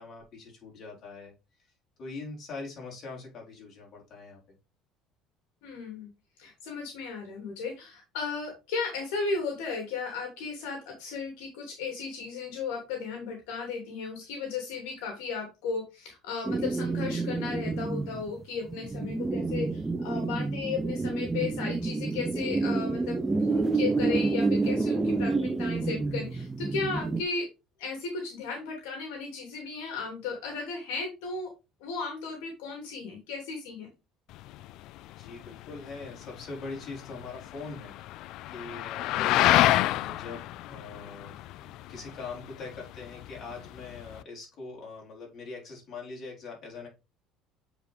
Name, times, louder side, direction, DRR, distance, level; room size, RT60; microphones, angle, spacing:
voice 1, 0.0-1.3 2.0-4.4 35.2-37.9 38.5-46.9, left 4 dB, 45° left, -1 dB, 4.3 m, -42 dB
voice 2, 5.6-6.1 6.4-27.5 27.8-31.5 31.8-33.9 39.1-39.4, left 4 dB, 85° left, 2 dB, 2.6 m, -35 dB
sound 1, 16.4-27.2, right 3 dB, 15° right, 0.6 m, -29 dB
sound 2, 34.3-44.2, left 15 dB, 65° left, 0.3 m, -29 dB
8.0 x 5.0 x 3.5 m, 0.26 s
supercardioid pair, 110°, 0 cm